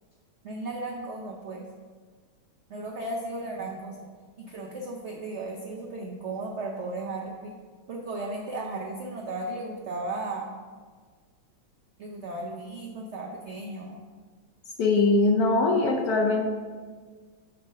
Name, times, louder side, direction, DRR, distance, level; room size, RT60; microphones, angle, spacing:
voice 1, 0.4-1.6 2.7-4.1 4.4-7.5 7.9-10.5 12.0-14.0, right 2 dB, 75° right, 0 dB, 0.6 m, -35 dB
voice 2, 14.8-16.4, left 3 dB, 65° left, 1 dB, 1.0 m, -22 dB
7.6 x 3.5 x 6.2 m, 1.5 s
omnidirectional pair, 2.1 m